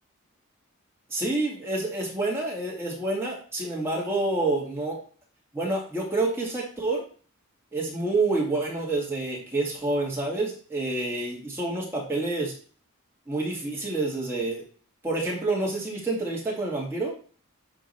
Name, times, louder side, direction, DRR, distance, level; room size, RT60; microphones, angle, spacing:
voice 1, 1.1-5.0 5.5-7.0 7.7-12.5 13.3-14.6 15.0-17.1, right 2 dB, 10° right, -4 dB, 2.5 m, -28 dB
10.0 x 3.7 x 4.4 m, 0.41 s
head